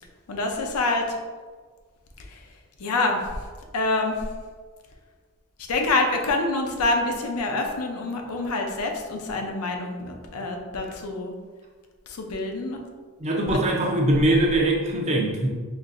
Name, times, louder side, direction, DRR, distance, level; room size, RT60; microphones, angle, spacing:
voice 1, 0.3-1.2 2.3-2.4 2.8-3.2 3.7-4.2 5.7-11.3 12.1-12.8 13.4-13.6, left 2 dB, 90° left, 2 dB, 0.6 m, -26 dB
voice 2, 13.2-15.5, right 1 dB, 30° right, 0 dB, 0.5 m, -22 dB
4.3 x 3.2 x 2.5 m, 1.5 s
head